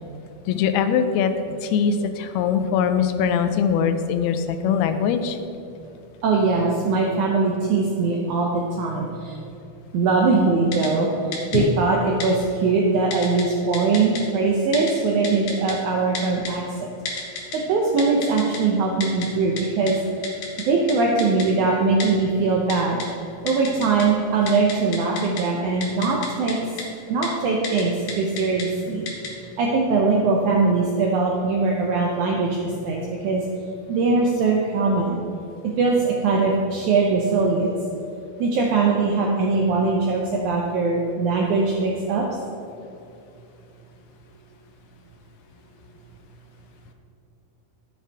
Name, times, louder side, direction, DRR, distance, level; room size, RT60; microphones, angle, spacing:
voice 1, 0.5-1.3 1.6-5.4 11.5-11.7, left 7 dB, 85° left, 9 dB, 2.5 m, -22 dB
voice 2, 6.2-9.1 9.9-11.1 11.5-12.4 12.6-16.6 17.7-20.0 20.7-23.0 23.4-26.6 27.1-29.0 29.6-32.5 32.8-33.0 33.2-33.4 33.9-35.2 35.8-37.8 38.4-42.2, right 4 dB, 80° right, -1 dB, 1.7 m, -21 dB
Typing, 10.7-10.9 11.3-11.6 12.2-12.3 13.1-13.4 13.7-14.2 14.7-14.9 15.2-15.7 16.1-16.5 17.1-17.6 18.0-18.6 19.0-19.3 19.6-19.7 19.9-20.0 20.2-20.6 20.9-21.0 21.2-21.5 22.0-22.1 22.7-23.1 23.5-24.0 24.3-25.4 25.8-26.5 26.8-26.9 27.2-27.3 27.6-27.8 28.1-28.6 29.1-29.3, left 4 dB, 70° left, 2.9 m, -31 dB
12.0 x 7.8 x 3.4 m, 2.7 s
omnidirectional pair, 4.4 m